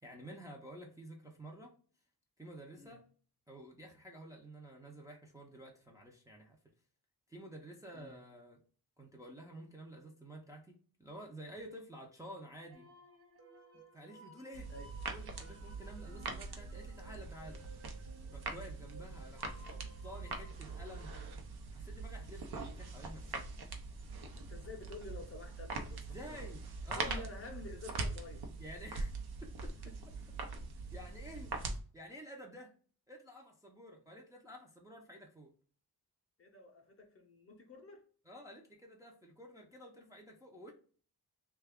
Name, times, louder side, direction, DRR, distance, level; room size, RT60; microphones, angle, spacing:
voice 1, 0.0-1.7 2.4-3.0 3.5-6.6 7.3-8.6 9.0-12.9 13.9-14.7 15.1-17.6 18.3-21.1 21.7-23.5 26.1-27.3 28.6-29.1 29.4-29.7 30.5-30.6 30.9-31.5 31.9-32.7 33.1-35.5 38.3-40.7, equal, 10° right, 0.4 m, -51 dB
sound 1, 12.5-21.3, right 2 dB, 40° right, 0.8 m, -58 dB
sound 2, 14.5-31.8, right 3 dB, 75° right, 0.7 m, -43 dB
voice 2, 24.3-26.4 27.0-28.4 29.8-29.9 36.4-38.1, left 3 dB, 35° left, 0.6 m, -50 dB
3.2 x 2.3 x 3.4 m
wide cardioid pair, 180°, 38 cm